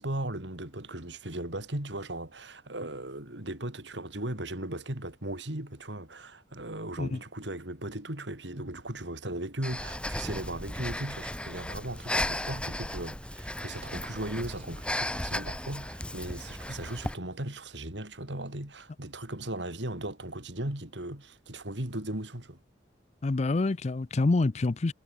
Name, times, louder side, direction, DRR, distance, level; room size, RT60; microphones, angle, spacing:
voice 1, 0.0-22.6, right 1 dB, 80° right, 4.1 m, -37 dB
Breathing, 9.6-17.1, left 1 dB, 5° left, 1.5 m, -35 dB
voice 2, 23.2-24.9, left 3 dB, 40° left, 0.5 m, -26 dB
head